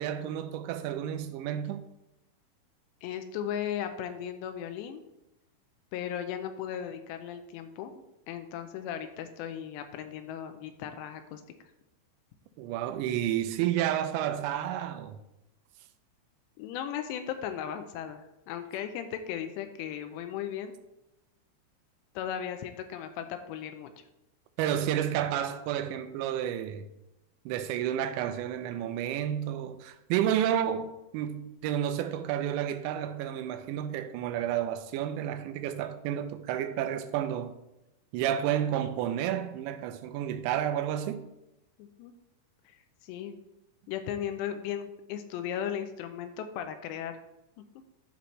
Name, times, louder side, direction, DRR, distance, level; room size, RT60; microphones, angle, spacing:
voice 1, 0.0-1.8 12.6-15.2 24.6-26.9 27.5-37.6 38.1-41.2, right 10 dB, 85° right, 2.9 m, -31 dB
voice 2, 3.0-5.0 5.9-11.4 16.6-20.7 22.2-23.9 41.8-42.1 42.7-42.8 43.0-43.3 43.9-47.1, left 9 dB, 85° left, 2.7 m, -36 dB
12.0 x 4.3 x 3.1 m
omnidirectional pair, 5.1 m